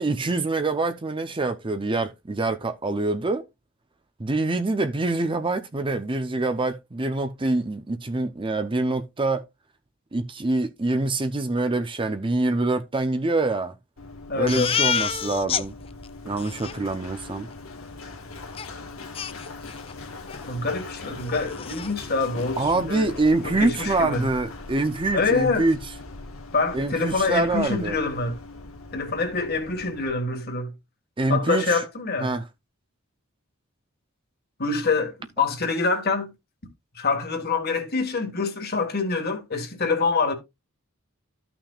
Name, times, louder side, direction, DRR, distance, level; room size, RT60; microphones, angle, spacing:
voice 1, 0.0-3.4 4.2-9.4 10.1-13.7 14.3-15.7 16.2-17.5 22.6-25.8 26.7-28.0 31.2-31.8 32.2-32.4, right 2 dB, 25° right, 0.6 m, -25 dB
Run, 14.0-30.1, left 3 dB, 75° left, 1.7 m, -40 dB
voice 2, 14.3-14.7 20.5-23.1 23.4-24.2 25.1-25.7 26.5-28.4 28.9-30.7 31.3-32.3 34.6-36.3 37.0-40.3, left 4 dB, 50° left, 1.8 m, -25 dB
Crying sobbing, 14.5-15.6 16.0-16.1 16.4-16.8 18.6-18.7 19.1-19.9 20.3-20.5 20.8-20.9 21.2-21.9, left 7 dB, 25° left, 0.4 m, -28 dB
13.5 x 6.0 x 2.4 m
head